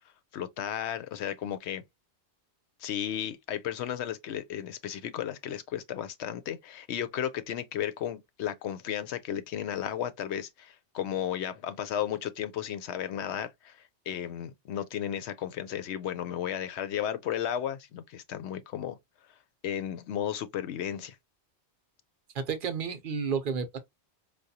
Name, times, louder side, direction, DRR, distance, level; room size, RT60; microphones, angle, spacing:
voice 1, 0.3-1.8 2.8-13.8 14.1-19.0 19.6-21.2, left 10 dB, 75° left, 0.9 m, -34 dB
voice 2, 22.3-23.8, right 6 dB, 55° right, 0.8 m, -31 dB
4.7 x 2.3 x 2.7 m
omnidirectional pair, 1.2 m